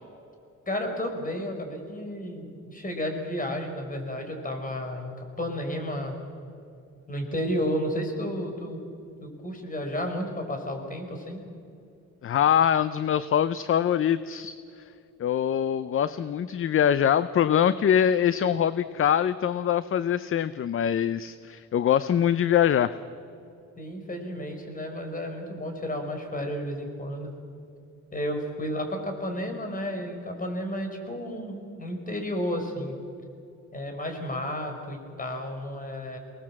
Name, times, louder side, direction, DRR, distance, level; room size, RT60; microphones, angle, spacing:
voice 1, 0.7-6.2 7.1-8.8 9.2-11.4 23.8-27.3 28.1-32.9 33.7-36.2, equal, 25° left, 4 dB, 5.1 m, -32 dB
voice 2, 12.2-14.5 15.2-22.9, left 9 dB, 45° left, 15 dB, 0.6 m, -23 dB
24.0 x 19.5 x 7.6 m, 2.6 s
cardioid pair, 90°, 30 cm